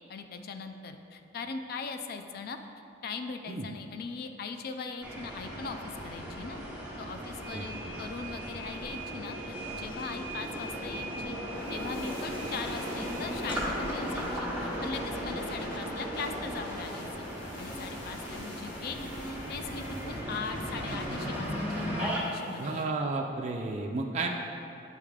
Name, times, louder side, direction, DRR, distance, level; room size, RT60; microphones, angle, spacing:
voice 1, 0.1-2.6 3.0-5.8 6.0-6.6 7.0-11.4 11.7-17.3 17.6-23.1, left 4 dB, 55° left, 7 dB, 0.3 m, -40 dB
sound 1, 5.0-22.2, equal, 10° right, 0.9 m, -36 dB
voice 2, 7.5-7.9 22.6-24.3, right 3 dB, 40° right, 1 dB, 0.4 m, -32 dB
sound 2, 11.5-22.8, equal, 85° left, 0.8 m, -44 dB
8.3 x 3.6 x 3.3 m, 2.6 s
head